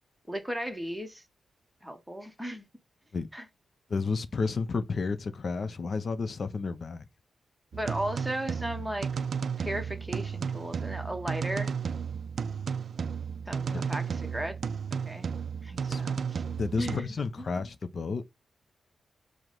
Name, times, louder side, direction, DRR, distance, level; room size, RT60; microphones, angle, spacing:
voice 1, 0.3-1.2 1.8-2.7 3.3-3.4 7.7-9.1 9.6-11.7 13.5-14.6 15.1-15.3 15.6-16.4 16.8-17.1 17.4-17.5, right 1 dB, 5° right, 0.9 m, -36 dB
voice 2, 3.9-7.1 13.7-13.8 15.9-16.0 16.6-18.2, left 4 dB, 50° left, 0.5 m, -31 dB
sound 1, 7.7-17.0, right 6 dB, 60° right, 0.3 m, -33 dB
4.7 x 2.1 x 3.8 m
wide cardioid pair, 105°, 0 cm